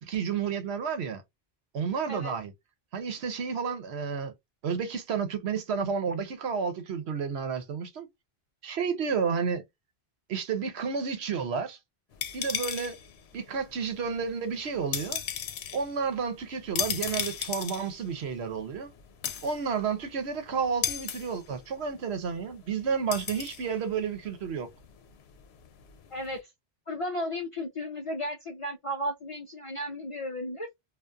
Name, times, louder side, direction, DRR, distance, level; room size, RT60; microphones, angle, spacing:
voice 1, 0.0-1.2 1.7-2.5 2.9-4.3 4.6-8.1 8.6-9.6 10.3-11.8 12.3-13.0 13.3-15.2 15.7-18.9 19.4-24.7, right 6 dB, 85° right, 1.0 m, -31 dB
sound 1, 12.1-26.4, left 9 dB, 80° left, 0.8 m, -37 dB
voice 2, 26.1-26.5 26.9-30.7, equal, 55° left, 0.3 m, -34 dB
2.4 x 2.3 x 2.4 m
omnidirectional pair, 1.1 m